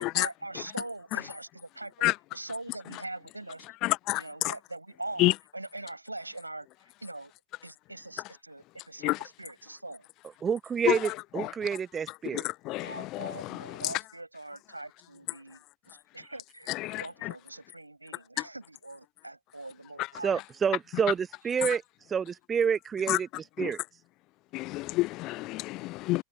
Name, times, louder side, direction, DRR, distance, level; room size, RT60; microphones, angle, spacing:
voice 1, 0.0-1.9 2.3-3.7 4.1-7.3 7.6-10.1 12.8-20.4 25.7-25.9, right 2 dB, 85° right, 7.9 m, -42 dB
voice 2, 3.8-4.5 5.2-5.3 9.0-9.2 10.9-11.0 11.4-11.5 12.3-13.8 16.7-17.3 23.1-23.2 23.6-23.7 24.5-26.2, left 20 dB, 40° left, 0.4 m, -29 dB
voice 3, 10.4-12.5 20.2-21.8 22.1-23.3 23.6-23.8, right 7 dB, 20° right, 1.2 m, -28 dB
figure-of-eight pair, 90°, 0 cm